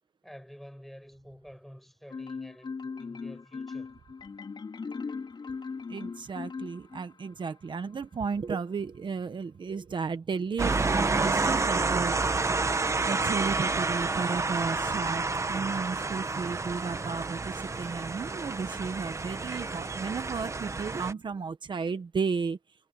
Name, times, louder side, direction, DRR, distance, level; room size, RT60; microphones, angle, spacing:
voice 1, 0.2-3.9, equal, ahead, 6.3 m, -49 dB
Marimba xylophone, 2.1-7.3, left 5 dB, 75° left, 4.2 m, -38 dB
voice 2, 5.9-12.2 13.0-22.6, right 5 dB, 80° right, 1.2 m, -33 dB
sound 1, 10.6-21.1, right 3 dB, 40° right, 1.0 m, -29 dB
wide cardioid pair, 120°, 8 cm